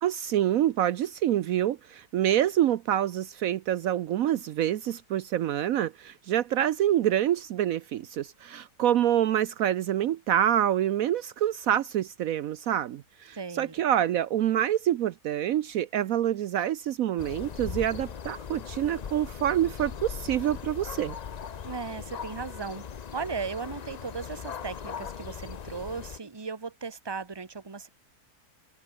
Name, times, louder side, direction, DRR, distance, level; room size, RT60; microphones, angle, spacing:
voice 1, 0.0-21.2, right 11 dB, 70° right, 1.1 m, -26 dB
voice 2, 13.3-13.7 21.6-22.9 23.1-27.9, right 5 dB, 20° right, 1.2 m, -36 dB
sound 1, 17.2-26.2, left 7 dB, 55° left, 0.4 m, -39 dB
omnidirectional pair, 1.6 m